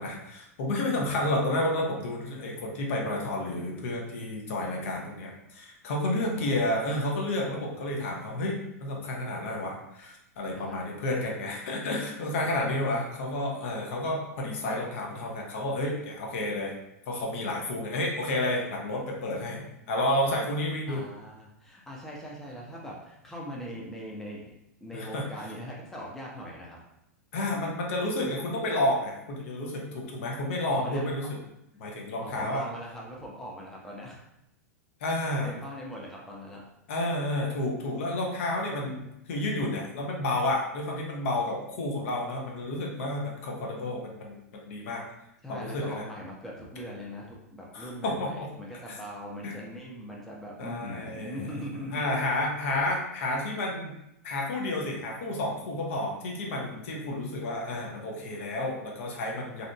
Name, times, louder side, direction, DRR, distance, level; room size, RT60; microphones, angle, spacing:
voice 1, 0.0-16.7 17.1-21.0 24.9-25.2 27.3-31.3 31.8-32.6 35.0-35.5 36.9-45.0 45.5-46.0 47.7-48.5 48.9-49.0 49.4-49.5 50.6-51.4 51.9-53.9 54.2-59.7, left 1 dB, 55° left, -1 dB, 0.6 m, -30 dB
voice 2, 20.9-24.5 24.8-26.8 30.7-31.0 32.2-34.2 35.4-36.6 45.4-52.1, equal, 5° left, -3 dB, 0.5 m, -41 dB
2.7 x 2.4 x 2.2 m, 0.82 s
figure-of-eight pair, 95°, 9 cm